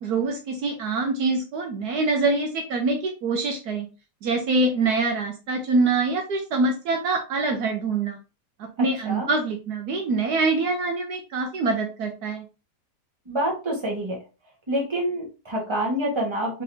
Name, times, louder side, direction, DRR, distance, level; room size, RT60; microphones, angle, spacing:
voice 1, 0.0-3.9 4.2-8.2 8.8-12.4, right 3 dB, 70° right, 3 dB, 1.2 m, -24 dB
voice 2, 13.3-14.2 14.7-16.6, right 1 dB, 20° right, -1 dB, 1.3 m, -27 dB
3.8 x 3.7 x 2.7 m, 0.30 s
omnidirectional pair, 1.8 m